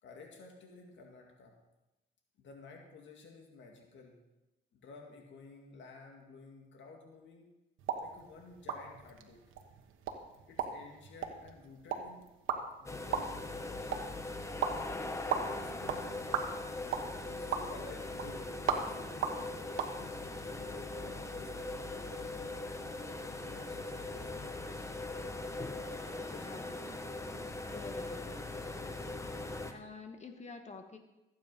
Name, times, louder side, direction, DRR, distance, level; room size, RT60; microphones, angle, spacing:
voice 1, 0.0-1.6 2.4-4.2 4.7-7.5 8.0-9.4 10.5-12.3 12.5-14.0 15.1-16.5 17.3-19.1 20.0-23.8 24.1-24.6 26.0-26.7, left 4 dB, 70° left, 2 dB, 2.1 m, -53 dB
sound 1, 7.8-19.9, right 7 dB, 85° right, 1.4 m, -39 dB
sound 2, 12.9-29.7, left 2 dB, 15° left, 1.2 m, -41 dB
voice 2, 26.3-26.8 27.7-28.3 29.7-31.0, left 4 dB, 35° left, 5 dB, 1.9 m, -48 dB
15.0 x 9.1 x 5.4 m, 0.99 s
cardioid pair, 90°, 20 cm